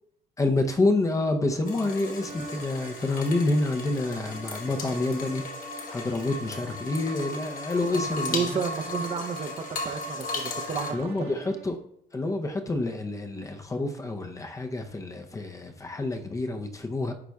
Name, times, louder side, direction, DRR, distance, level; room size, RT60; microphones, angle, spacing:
voice 1, 0.4-5.4 5.9-8.6 10.9-11.8 12.1-17.1, left 2 dB, 20° left, 5 dB, 0.6 m, -28 dB
sound 1, 1.6-10.9, left 2 dB, 55° left, 1.2 m, -36 dB
sound 2, 2.1-11.8, right 2 dB, 60° right, 2.1 m, -47 dB
voice 2, 7.9-11.3, right 6 dB, 35° right, 7 dB, 0.7 m, -32 dB
11.0 x 4.0 x 2.3 m, 0.69 s
cardioid pair, 110°, 17 cm